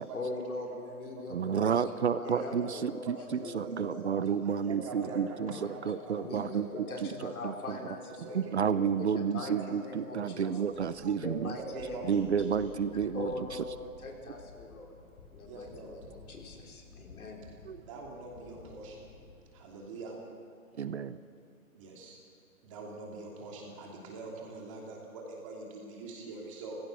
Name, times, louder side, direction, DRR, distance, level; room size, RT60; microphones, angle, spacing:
voice 1, 0.1-1.8 2.0-3.1 3.4-4.0 4.8-4.9 5.4-5.7 6.1-8.5 9.0-10.5 11.1-12.0 12.4-12.5 13.1-14.9 15.3-17.4, left 2 dB, 75° left, 1 dB, 4.7 m, -42 dB
voice 2, 1.3-5.5 5.9-6.7 7.0-7.8 8.3-11.6 12.1-13.3 17.6-17.8 20.8-21.2, right 7 dB, 50° right, 14 dB, 0.7 m, -31 dB
voice 3, 2.2-2.7 3.0-3.1 3.4-4.1 4.4-5.8 6.2-6.3 6.6-6.8 7.2-7.6 8.2-8.4 8.9-9.0 9.3-9.9 10.4-10.5 11.4-12.4 15.4-15.9 17.9-18.9 19.6-20.1 21.8-22.2 22.7-26.8, right 3 dB, 20° right, -1 dB, 2.9 m, -44 dB
sound 1, 10.7-19.4, left 4 dB, 50° left, 5.6 m, -53 dB
29.5 x 16.0 x 6.3 m, 2.4 s
hypercardioid pair, 175°, 43 cm